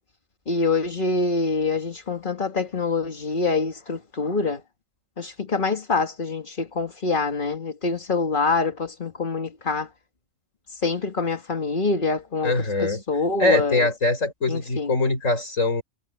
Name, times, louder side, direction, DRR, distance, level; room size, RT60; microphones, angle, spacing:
voice 1, 0.5-4.6 5.2-9.9 10.7-13.9 14.5-14.9, left 4 dB, 40° left, 1.8 m, -25 dB
voice 2, 12.4-13.0 13.4-15.8, left 2 dB, 85° left, 5.7 m, -23 dB
omnidirectional pair, 1.3 m